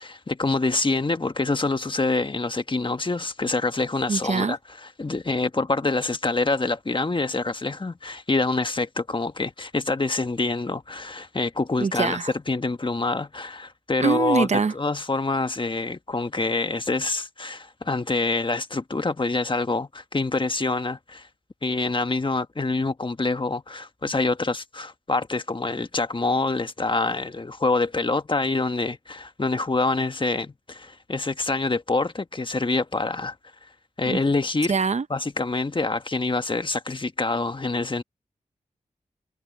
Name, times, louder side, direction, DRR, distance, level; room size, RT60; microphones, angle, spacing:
voice 1, 0.0-12.2 12.5-21.3 21.6-33.3 34.0-34.7 35.1-38.0, left 3 dB, 35° left, 1.5 m, -26 dB
voice 2, 4.1-4.6 11.8-12.3 14.0-14.7 34.1-34.2 34.7-35.0, right 5 dB, 55° right, 0.8 m, -23 dB
cardioid pair, 45°, 14 cm